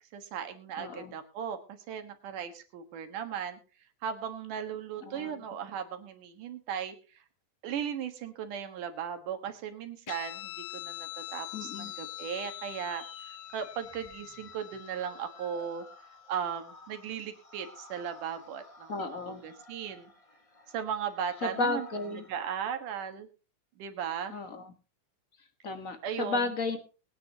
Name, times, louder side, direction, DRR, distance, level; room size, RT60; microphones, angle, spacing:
voice 1, 0.1-3.6 4.0-7.0 7.6-15.9 16.3-20.1 20.7-21.9 22.1-23.3 23.8-24.3 26.0-26.5, right 8 dB, 70° right, 7 dB, 2.9 m, -37 dB
voice 2, 0.8-1.1 5.0-5.4 11.5-11.9 18.9-19.4 21.4-22.2 24.3-24.7 25.6-26.8, left 3 dB, 40° left, 7 dB, 1.2 m, -33 dB
Guitar, 10.1-17.0, left 14 dB, 75° left, 2.6 m, -44 dB
sound 1, 11.2-22.5, left 2 dB, 15° left, 1.2 m, -55 dB
21.5 x 9.8 x 2.9 m, 0.33 s
omnidirectional pair, 3.9 m